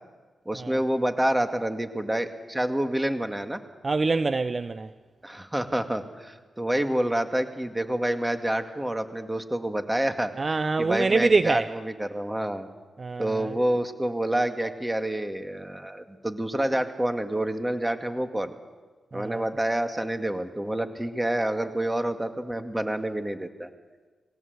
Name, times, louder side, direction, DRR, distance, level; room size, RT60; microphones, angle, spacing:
voice 1, 0.5-3.6 5.2-10.3 10.8-12.7 13.2-18.5 19.1-23.7, right 1 dB, 15° right, 2.2 m, -28 dB
voice 2, 3.8-4.9 10.4-11.7 13.0-13.6 19.1-19.4, right 3 dB, 45° right, 0.7 m, -25 dB
21.5 x 17.0 x 8.2 m
supercardioid pair, 45°, 0 cm